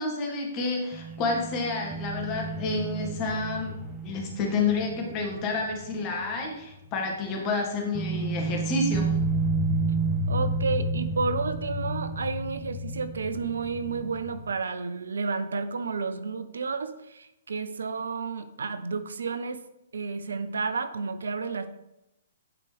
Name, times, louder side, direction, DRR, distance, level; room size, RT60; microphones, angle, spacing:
voice 1, 0.0-3.7 4.0-9.1, left 3 dB, 35° left, 0 dB, 1.9 m, -29 dB
sound 1, 0.9-6.3 6.6-6.8 7.9-14.5, right 2 dB, 15° right, 0.8 m, -31 dB
voice 2, 10.3-19.6 19.9-21.7, right 4 dB, 75° right, 11 dB, 0.6 m, -31 dB
9.7 x 4.5 x 3.4 m, 0.88 s
figure-of-eight pair, 120°, 0 cm